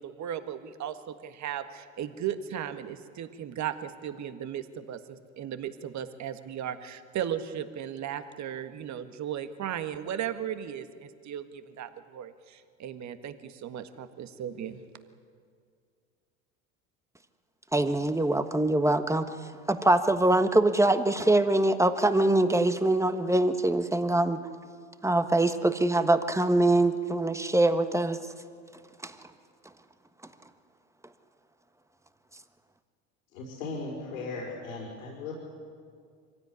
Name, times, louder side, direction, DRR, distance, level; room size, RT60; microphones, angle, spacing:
voice 1, 0.0-14.8, right 9 dB, 45° right, 10 dB, 1.7 m, -36 dB
voice 2, 17.7-19.3 19.7-24.4 25.0-28.2 29.0-29.1, right 2 dB, 5° right, 10 dB, 1.4 m, -23 dB
voice 3, 33.3-35.3, left 3 dB, 80° left, -3 dB, 5.4 m, -37 dB
24.0 x 16.0 x 9.6 m, 2.2 s
hypercardioid pair, 85°, 40 cm